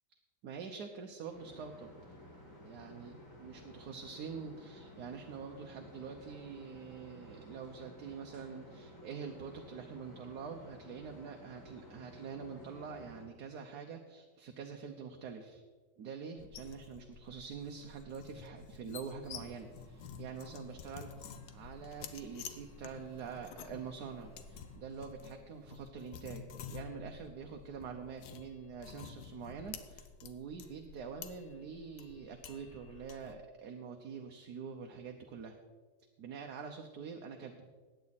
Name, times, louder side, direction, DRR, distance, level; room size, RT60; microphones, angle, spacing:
voice 1, 0.4-2.2 2.6-3.1 3.4-15.6 16.0-35.6 36.2-37.7, right 6 dB, 65° right, 3 dB, 1.3 m, -46 dB
sound 1, 1.3-13.2, left 1 dB, 50° left, 3.5 m, -54 dB
sound 2, 16.4-33.4, left 7 dB, 85° left, 1.5 m, -50 dB
sound 3, 19.3-24.8, equal, 10° left, 1.4 m, -62 dB
16.0 x 9.7 x 4.1 m, 1.4 s
omnidirectional pair, 1.9 m